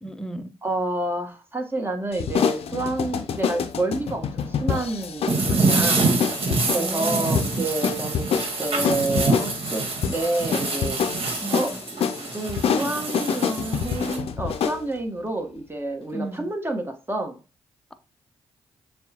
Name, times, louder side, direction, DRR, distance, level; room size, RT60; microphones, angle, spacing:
voice 1, 0.0-0.5 6.7-7.5 11.4-11.8 16.1-16.5, right 1 dB, 5° left, 0.7 m, -33 dB
voice 2, 0.6-6.1 6.7-9.8 10.1-11.2 11.5-17.4, right 2 dB, 20° right, 1.3 m, -29 dB
sound 1, 2.1-14.8, left 7 dB, 60° left, 0.5 m, -27 dB
sound 2, 5.3-14.2, right 3 dB, 55° right, 1.4 m, -26 dB
6.7 x 2.3 x 2.9 m
hypercardioid pair, 45°, 11 cm